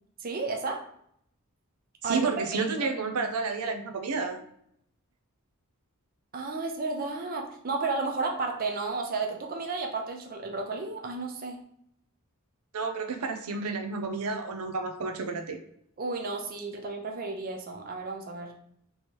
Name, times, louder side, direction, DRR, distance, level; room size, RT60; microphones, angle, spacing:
voice 1, 0.2-0.8 2.0-3.0 6.3-11.6 16.0-18.5, right 3 dB, 40° right, 3 dB, 0.5 m, -32 dB
voice 2, 2.0-4.4 12.7-15.6, right 4 dB, 85° right, 4 dB, 0.6 m, -31 dB
3.2 x 3.0 x 4.3 m, 0.70 s
head